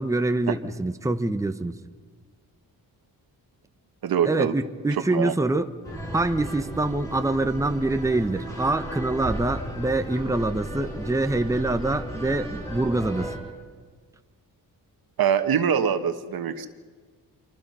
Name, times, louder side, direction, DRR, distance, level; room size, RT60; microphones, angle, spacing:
voice 1, 0.0-1.8 4.2-5.7 6.1-13.3, right 2 dB, 10° right, 8 dB, 1.0 m, -25 dB
voice 2, 4.0-4.6 4.9-5.6 15.2-16.7, right 8 dB, 75° right, 9 dB, 1.4 m, -24 dB
sound 1, 5.8-13.4, right 1 dB, 10° left, 6.2 m, -35 dB
27.5 x 24.5 x 5.5 m, 1.5 s
cardioid pair, 105°, 36 cm